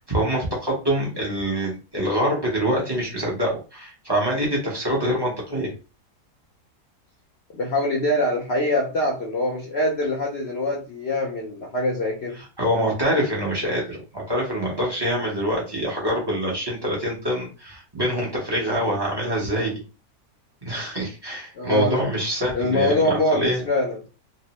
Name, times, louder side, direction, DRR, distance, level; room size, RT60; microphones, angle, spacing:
voice 1, 0.0-5.7 12.6-19.8 20.6-23.6, equal, 20° right, 0.7 m, -25 dB
voice 2, 7.5-12.4 21.5-22.0 22.5-24.0, left 1 dB, 75° left, 0.5 m, -23 dB
3.0 x 2.0 x 2.8 m
omnidirectional pair, 1.8 m